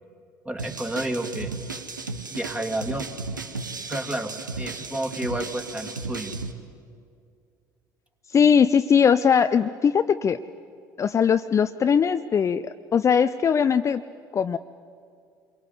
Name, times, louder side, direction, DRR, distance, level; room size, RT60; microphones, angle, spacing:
voice 1, 0.5-1.5 2.3-3.1 3.9-6.3, right 1 dB, 10° right, 5 dB, 2.4 m, -30 dB
sound 1, 0.6-6.5, right 3 dB, 85° right, 1.0 m, -35 dB
voice 2, 8.3-10.4 11.0-14.0 14.3-14.6, left 7 dB, 30° left, 11 dB, 0.5 m, -20 dB
27.0 x 22.5 x 8.2 m, 2.3 s
figure-of-eight pair, 60°, 10 cm